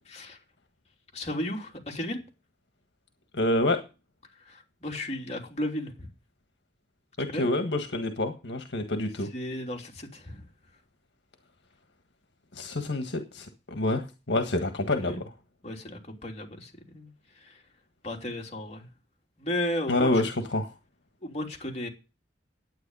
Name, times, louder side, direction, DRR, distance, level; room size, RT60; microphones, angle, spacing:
voice 1, 1.1-2.2 4.5-6.1 7.3-7.4 9.3-10.4 15.1-15.2 15.6-17.1 18.0-18.9 19.4-20.1 21.2-21.9, left 1 dB, 35° left, 3.1 m, -34 dB
voice 2, 3.3-3.8 7.2-9.3 12.5-15.2 19.9-20.7, left 2 dB, 70° left, 1.6 m, -27 dB
11.5 x 9.1 x 5.5 m
head